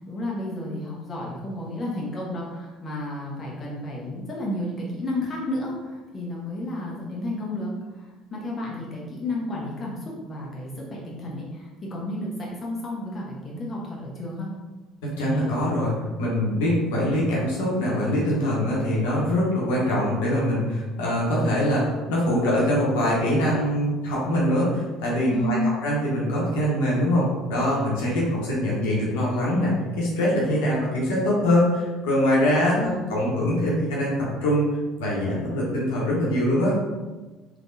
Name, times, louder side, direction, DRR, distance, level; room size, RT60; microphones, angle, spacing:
voice 1, 0.0-14.5 25.3-25.7 32.7-33.0, left 1 dB, 35° left, -4 dB, 0.9 m, -32 dB
voice 2, 15.0-32.8 33.1-34.7 35.0-36.8, equal, 70° left, -5 dB, 1.0 m, -23 dB
3.6 x 2.9 x 2.6 m, 1.2 s
figure-of-eight pair, 55°, 0 cm